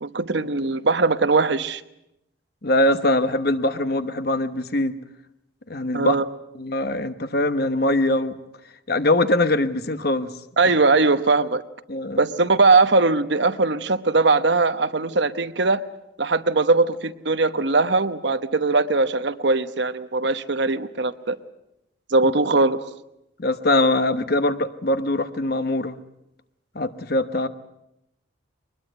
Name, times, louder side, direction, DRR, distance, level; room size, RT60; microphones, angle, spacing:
voice 1, 0.0-1.8 5.9-6.2 10.6-11.6 12.2-15.8 16.2-21.4 22.1-22.9, right 3 dB, 60° right, 11 dB, 1.0 m, -20 dB
voice 2, 2.6-5.0 5.7-6.2 6.5-8.4 8.9-10.3 11.9-12.2 23.4-26.0 26.7-27.5, left 1 dB, 50° left, 10 dB, 1.1 m, -22 dB
22.5 x 20.5 x 8.0 m, 0.85 s
head